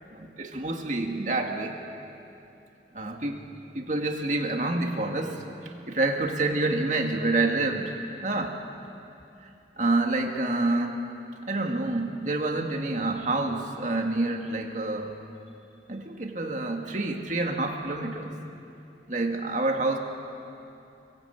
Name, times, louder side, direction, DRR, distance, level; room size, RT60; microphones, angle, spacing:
voice 1, 0.1-1.7 2.9-3.4 3.7-5.4 5.9-7.9 8.2-8.6 9.8-11.0 11.4-15.1 15.9-18.3 19.1-20.0, right 2 dB, 45° right, 2 dB, 2.1 m, -27 dB
25.5 x 24.0 x 8.2 m, 2.7 s
head